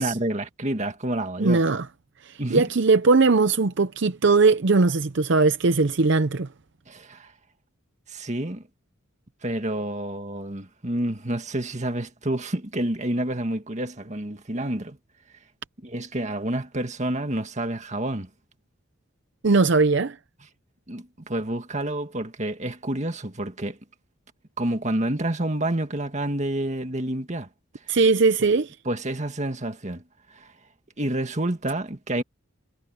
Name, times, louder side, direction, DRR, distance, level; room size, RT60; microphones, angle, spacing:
voice 1, 0.0-1.6 2.4-2.7 6.9-7.3 8.1-8.6 9.4-15.0 15.8-18.3 20.9-23.8 24.6-27.5 28.9-30.0 30.3-30.5 31.0-32.2, right 1 dB, 35° right, 1.9 m, -28 dB
voice 2, 1.4-1.8 2.2-6.5 19.4-20.2 27.9-28.8, right 3 dB, 60° right, 0.7 m, -20 dB
head